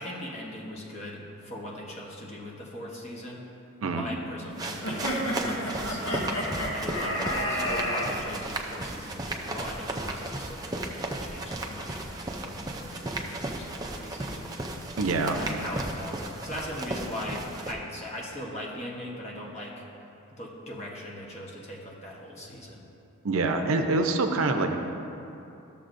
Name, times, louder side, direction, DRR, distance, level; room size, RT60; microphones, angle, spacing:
voice 1, 0.0-3.4 3.9-6.4 6.7-12.0 12.4-14.5 15.3-19.7 20.4-22.8, left 1 dB, 30° left, -3 dB, 1.0 m, -40 dB
sound 1, 4.5-17.7, right 2 dB, 15° right, 0.4 m, -35 dB
sound 2, 4.8-8.1, equal, 90° left, 1.4 m, -30 dB
voice 2, 15.0-15.4 23.2-24.8, right 3 dB, 70° right, 6 dB, 0.5 m, -25 dB
12.0 x 6.9 x 2.6 m, 2.8 s
head